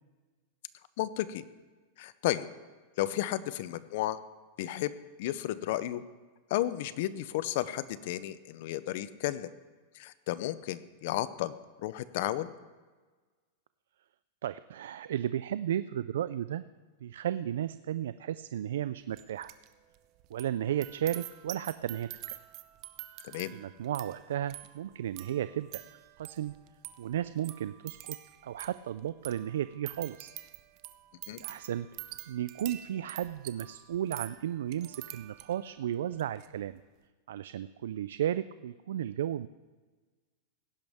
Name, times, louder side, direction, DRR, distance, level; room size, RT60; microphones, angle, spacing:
voice 1, 1.0-1.4 2.0-2.5 3.0-4.2 4.6-4.9 5.2-6.0 6.5-9.5 9.9-11.6 11.8-12.5 23.3-23.5 31.3-31.4, left 14 dB, 60° left, 16 dB, 0.6 m, -33 dB
voice 2, 14.4-16.6 17.0-19.5 20.3-22.1 23.5-25.8 26.2-26.5 27.0-28.2 28.4-30.3 31.4-31.9 32.3-36.7 37.3-39.5, right 11 dB, 85° right, 14 dB, 0.3 m, -34 dB
sound 1, 19.2-19.7 19.9-35.7 36.1-36.5, right 15 dB, 40° right, 0.7 m, -47 dB
17.0 x 10.5 x 3.5 m, 1.4 s
supercardioid pair, 145°, 0 cm